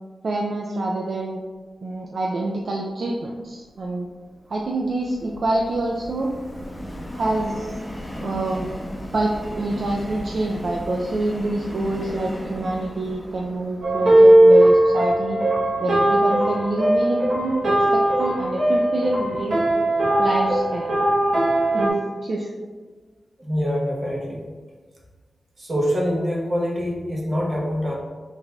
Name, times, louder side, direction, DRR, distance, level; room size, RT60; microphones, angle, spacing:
voice 1, 0.2-1.4 1.8-4.1 4.5-6.3 7.1-7.8 8.2-8.7 9.1-15.4 15.8-19.6 20.2-20.9 21.7-22.5, right 2 dB, 60° right, -1 dB, 0.4 m, -26 dB
Subway metro underground, 3.6-14.9, equal, 10° left, 0.7 m, -36 dB
sound 1, 13.8-21.9, right 1 dB, 85° right, 0.9 m, -18 dB
voice 2, 23.4-24.4 25.6-27.9, equal, 40° right, -3 dB, 0.9 m, -25 dB
4.1 x 3.9 x 2.3 m, 1.4 s
wide cardioid pair, 105°, 0 cm